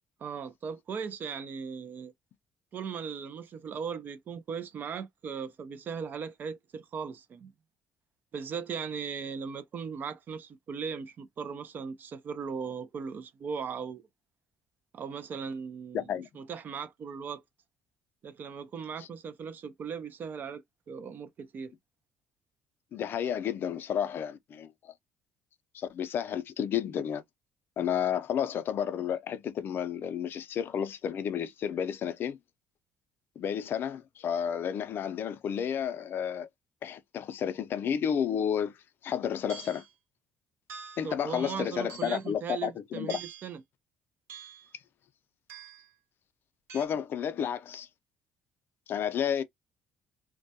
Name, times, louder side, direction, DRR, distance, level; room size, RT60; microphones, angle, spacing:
voice 1, 0.2-2.1 2.7-7.5 8.3-14.0 14.9-17.4 18.2-21.7 41.0-43.6, right 6 dB, 45° right, 0.4 m, -38 dB
voice 2, 15.9-16.3 19.0-19.1 22.9-24.9 25.7-27.2 27.8-32.4 33.4-36.5 36.8-38.7 39.0-39.8 41.0-43.2 46.7-47.9 48.9-49.4, left 8 dB, 50° left, 0.4 m, -31 dB
sound 1, 39.5-39.9 40.7-41.1 41.9-42.4 43.1-43.5 44.3-44.7 45.5-45.9 46.7-46.9, right 7 dB, 75° right, 1.0 m, -46 dB
2.2 x 2.1 x 2.7 m
cardioid pair, 110°, 5 cm